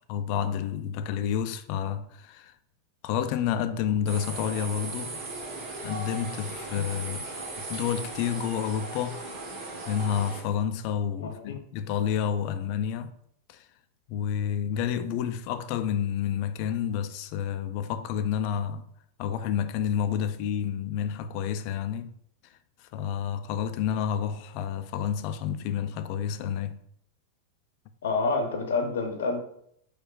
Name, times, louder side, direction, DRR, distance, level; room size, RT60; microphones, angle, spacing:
voice 1, 0.1-2.5 3.0-5.2 5.8-7.3 7.6-9.2 9.9-13.1 13.5-13.6 14.1-18.9 19.2-22.1 22.9-26.8, left 8 dB, 55° left, 0.3 m, -29 dB
sound 1, 4.1-10.4, right 2 dB, 55° right, 1.2 m, -37 dB
voice 2, 11.2-11.6 28.0-29.4, left 3 dB, 80° left, 0.7 m, -28 dB
4.4 x 2.3 x 2.4 m
hypercardioid pair, 110°, 0 cm